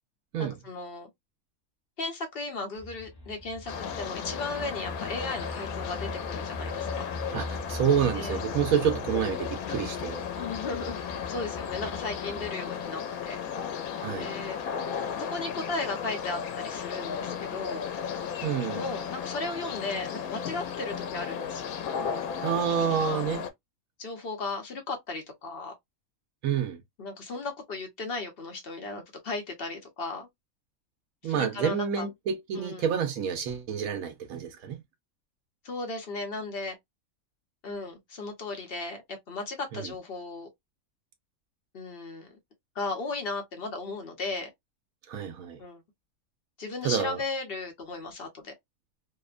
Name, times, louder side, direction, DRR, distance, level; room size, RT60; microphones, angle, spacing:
voice 1, 0.4-1.1 2.0-7.2 8.1-8.4 9.1-9.3 10.4-13.4 14.1-14.6 15.3-17.9 18.7-21.8 22.8-23.2 24.0-25.7 27.0-30.3 31.2-32.1 32.5-32.8 35.6-36.8 37.6-39.0 39.3-40.5 41.7-42.4 42.7-44.5 45.6-45.8 46.6-48.5, left 3 dB, 50° left, 0.9 m, -36 dB
sound 1, 2.7-12.5, left 1 dB, 25° left, 0.5 m, -41 dB
sound 2, 3.7-23.5, left 7 dB, 90° left, 1.0 m, -35 dB
voice 2, 7.3-10.3 14.0-14.3 18.4-18.8 22.4-23.4 26.4-26.8 31.2-34.8 39.7-39.9 45.1-45.6 46.8-47.2, right 8 dB, 80° right, 1.1 m, -28 dB
2.9 x 2.1 x 2.3 m
omnidirectional pair, 1.5 m